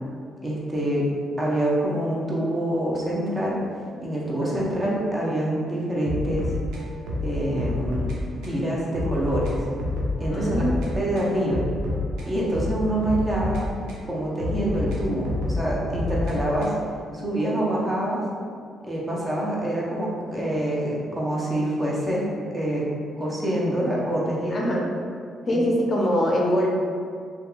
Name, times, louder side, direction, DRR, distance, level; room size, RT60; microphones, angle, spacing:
voice 1, 0.4-1.1 1.4-3.6 4.0-6.5 7.2-8.1 8.4-9.5 10.2-10.6 10.9-11.6 12.3-13.6 14.1-16.7 17.1-18.2 18.8-22.3 22.5-22.9 23.2-24.7 25.5-25.6, right 1 dB, 25° right, -5 dB, 0.7 m, -26 dB
voice 2, 4.2-4.6 10.2-10.8 24.5-24.9 25.5-26.7, equal, 45° left, -2 dB, 0.5 m, -23 dB
sound 1, 6.0-8.2 8.4-8.6 8.9-10.9 11.2-14.0 14.4-16.9, left 2 dB, 80° right, 0.5 m, -29 dB
2.7 x 2.3 x 2.4 m, 2.2 s
supercardioid pair, 55°, 0 cm